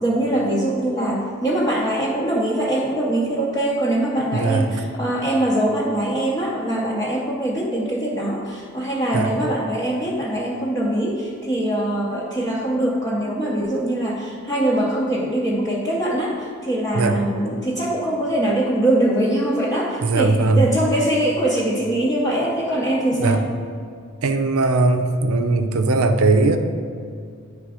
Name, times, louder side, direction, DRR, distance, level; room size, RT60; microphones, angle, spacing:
voice 1, 0.0-23.4, right 1 dB, 15° left, -6 dB, 0.7 m, -22 dB
voice 2, 4.3-4.7 9.1-9.3 16.9-17.2 20.0-20.6 23.1-23.4 24.2-26.6, right 3 dB, 80° right, 6 dB, 0.6 m, -19 dB
9.8 x 3.4 x 4.8 m, 2.3 s
head